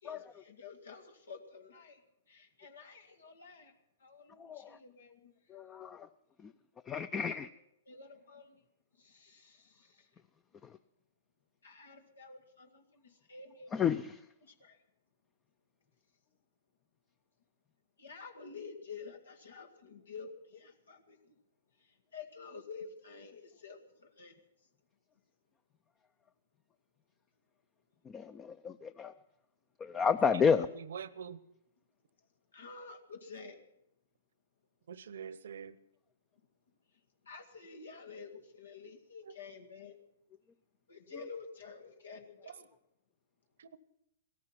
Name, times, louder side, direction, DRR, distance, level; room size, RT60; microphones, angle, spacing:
voice 1, 0.0-2.0 2.3-3.7 4.0-5.3 7.9-8.6 9.0-10.1 11.6-13.7 14.4-14.8 18.0-21.4 21.8-24.4 32.5-33.6 37.2-40.0 40.9-42.7, left 5 dB, 85° left, 5 dB, 2.0 m, -50 dB
voice 2, 4.4-4.8 5.5-6.1 6.4-6.5 6.9-7.5 13.7-14.2 28.1-29.1 29.8-30.7, left 6 dB, 20° left, 13 dB, 0.5 m, -31 dB
voice 3, 30.8-31.4 34.9-35.8 43.6-43.8, right 7 dB, 70° right, 18 dB, 0.8 m, -44 dB
17.0 x 14.0 x 5.9 m, 0.81 s
hypercardioid pair, 125°, 0 cm